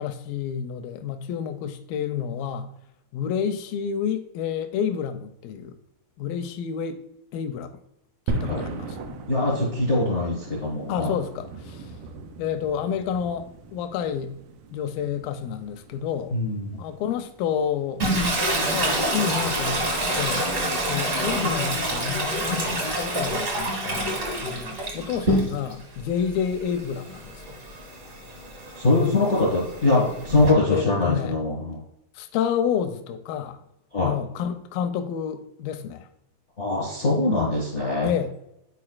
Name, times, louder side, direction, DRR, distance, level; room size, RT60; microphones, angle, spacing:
voice 1, 0.0-2.7 3.1-5.8 6.2-7.1 7.3-7.7 8.3-9.2 10.9-11.9 12.4-14.4 14.7-16.3 16.7-18.0 18.7-19.8 20.1-20.5 20.9-27.6 29.0-29.3 30.7-31.4 32.2-33.6 34.0-36.1 38.0-38.4, left 8 dB, 85° left, 2.3 m, -29 dB
sound 1, 8.3-18.6, right 3 dB, 85° right, 1.9 m, -38 dB
voice 2, 9.3-11.1 16.3-16.8 28.8-31.8 33.9-34.1 36.6-38.1, left 2 dB, 60° left, 0.7 m, -23 dB
Toilet flush, 18.0-25.8 26.2-30.5, right 1 dB, 55° right, 0.8 m, -27 dB
11.0 x 4.5 x 2.4 m
omnidirectional pair, 4.1 m